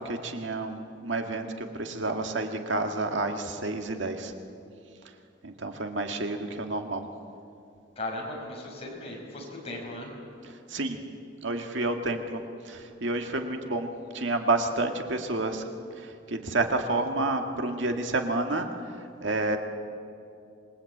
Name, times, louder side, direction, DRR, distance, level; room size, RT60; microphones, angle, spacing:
voice 1, 0.1-4.3 5.4-7.0 10.7-11.0 11.4-13.9 14.1-15.6 16.0-18.7 19.2-19.6, right 2 dB, 70° right, 4 dB, 1.9 m, -29 dB
voice 2, 8.0-10.1, left 1 dB, 30° left, -1 dB, 5.8 m, -37 dB
27.0 x 21.5 x 8.6 m, 2.5 s
head